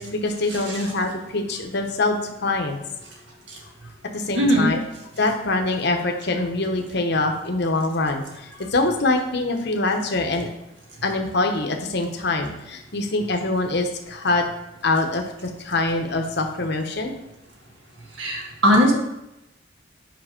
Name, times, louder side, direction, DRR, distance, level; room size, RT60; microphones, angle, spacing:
voice 1, 0.0-2.8 4.1-4.8 5.2-10.5 11.0-14.4 14.8-17.1, left 2 dB, 55° left, 3 dB, 0.9 m, -24 dB
voice 2, 4.4-4.7 18.2-18.9, equal, 60° right, 0 dB, 1.8 m, -18 dB
7.4 x 5.4 x 5.1 m, 0.89 s
head